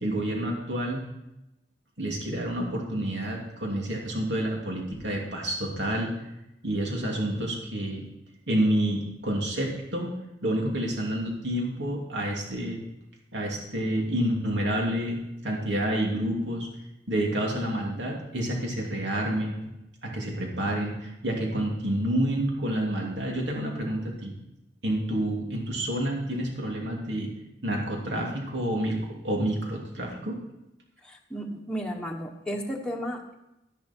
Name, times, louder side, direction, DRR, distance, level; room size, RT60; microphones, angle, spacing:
voice 1, 0.0-1.0 2.0-6.1 6.6-8.0 8.5-10.1 10.4-12.8 13.3-16.7 17.1-19.7 20.0-24.3 24.8-27.3 27.6-30.4, right 1 dB, 75° right, -1 dB, 2.9 m, -29 dB
voice 2, 31.0-33.3, equal, 5° left, 0 dB, 1.2 m, -33 dB
12.0 x 10.5 x 4.5 m, 0.90 s
head